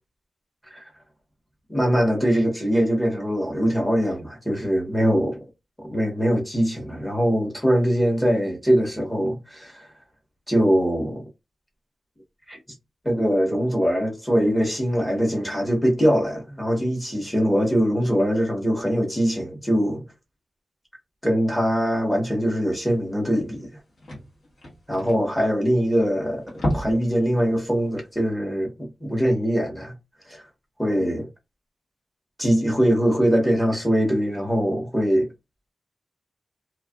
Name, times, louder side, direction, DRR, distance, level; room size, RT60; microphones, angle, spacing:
voice 1, 1.7-5.4 5.8-9.9 10.5-11.2 12.5-12.6 13.0-20.0 21.2-23.7 24.9-29.9 30.3-30.4 30.8-31.3 32.4-35.3, equal, 10° left, 1.0 m, -22 dB
sound 1, 23.0-23.1 23.4-23.5 23.7-26.0 26.4-27.1 27.5-27.6 28.1-28.2, equal, 70° left, 1.3 m, -30 dB
2.6 x 2.4 x 2.3 m
wide cardioid pair, 160°, 0 cm